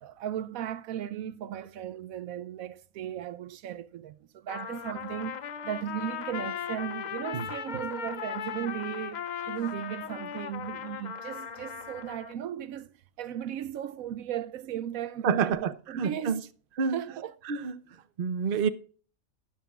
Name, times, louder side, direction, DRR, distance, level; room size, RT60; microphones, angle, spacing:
voice 1, 0.0-16.5 16.9-17.3, right 10 dB, 80° right, 1.0 m, -36 dB
Trumpet, 4.5-12.4, left 8 dB, 85° left, 0.4 m, -38 dB
voice 2, 15.2-16.4 16.8-17.0 17.5-17.7 18.2-18.7, right 6 dB, 50° right, 0.8 m, -28 dB
12.5 x 10.0 x 2.3 m
omnidirectional pair, 1.5 m